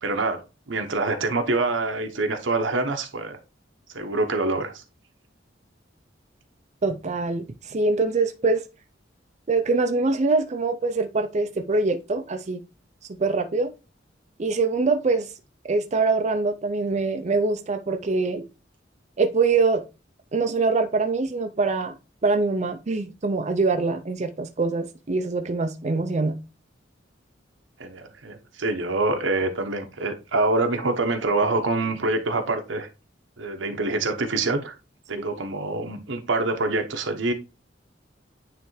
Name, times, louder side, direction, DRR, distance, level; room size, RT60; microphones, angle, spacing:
voice 1, 0.0-3.4 3.9-4.8 27.8-32.9 33.4-34.7 35.1-37.3, right 2 dB, 85° right, 1.0 m, -25 dB
voice 2, 6.8-8.6 9.5-12.6 13.2-13.7 14.4-15.3 15.6-18.4 19.2-19.8 20.3-21.9 22.2-26.4, right 3 dB, 40° right, 0.5 m, -24 dB
9.3 x 3.4 x 3.2 m
head